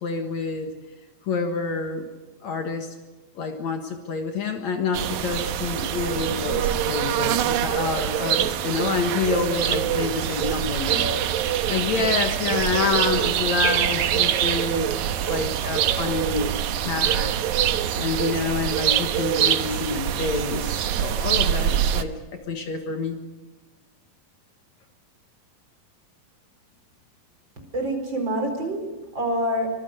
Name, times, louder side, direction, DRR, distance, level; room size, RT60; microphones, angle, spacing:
voice 1, 0.0-0.7 1.3-2.1 2.4-2.9 3.4-14.9 15.3-17.3 17.9-23.2, left 5 dB, 60° left, 5 dB, 2.7 m, -28 dB
sound 1, 4.9-22.0, right 10 dB, 70° right, 2.2 m, -24 dB
voice 2, 27.6-29.8, right 1 dB, 35° right, 4 dB, 5.1 m, -27 dB
25.0 x 22.5 x 6.7 m, 1.2 s
omnidirectional pair, 3.9 m